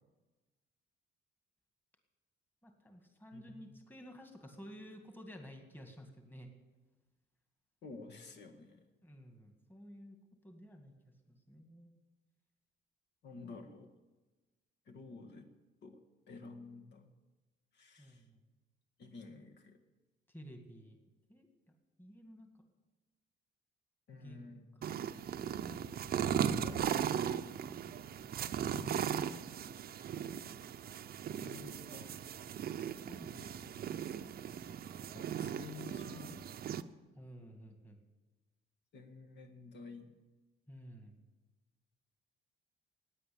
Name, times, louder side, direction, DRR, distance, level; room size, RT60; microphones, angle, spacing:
voice 1, 2.6-6.5 9.0-10.2 10.4-10.9 11.3-11.9 13.4-13.6 18.0-18.4 20.3-21.0 21.3-21.5 22.0-22.6 24.1-24.5 24.8-25.2 28.7-29.3 33.1-33.9 37.1-38.0 40.7-41.1, equal, 10° left, 4 dB, 2.1 m, -53 dB
voice 2, 3.3-3.8 7.8-8.9 13.2-13.9 14.9-15.5 15.8-16.0 16.3-17.1 17.7-18.3 19.0-19.8 24.1-24.8 26.2-27.1 31.3-32.2 33.4-33.6 35.1-36.5 38.9-40.2, left 4 dB, 60° left, 4 dB, 1.7 m, -52 dB
sound 1, 24.8-36.8, right 9 dB, 50° right, 0.7 m, -38 dB
16.5 x 9.6 x 8.7 m, 1.2 s
cardioid pair, 140°, 20 cm